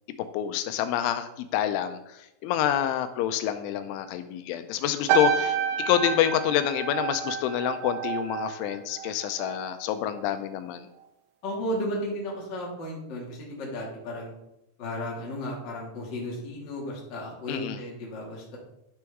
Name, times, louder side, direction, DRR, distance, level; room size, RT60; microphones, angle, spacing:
voice 1, 0.3-5.6 5.9-10.9 17.5-17.8, left 11 dB, 85° left, 10 dB, 3.0 m, -27 dB
sound 1, 5.1-9.7 10.0-10.4, right 7 dB, 90° right, 3.4 m, -29 dB
voice 2, 11.4-14.3 14.8-18.6, equal, 35° left, -3 dB, 1.8 m, -34 dB
11.0 x 6.1 x 3.6 m, 0.85 s
omnidirectional pair, 5.4 m